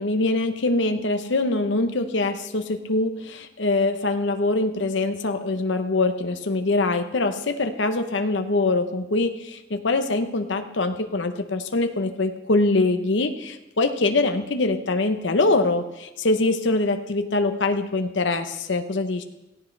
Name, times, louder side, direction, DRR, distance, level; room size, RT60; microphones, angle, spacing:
voice 1, 0.0-19.2, left 2 dB, 70° left, 7 dB, 0.9 m, -23 dB
17.0 x 15.5 x 3.3 m, 0.98 s
head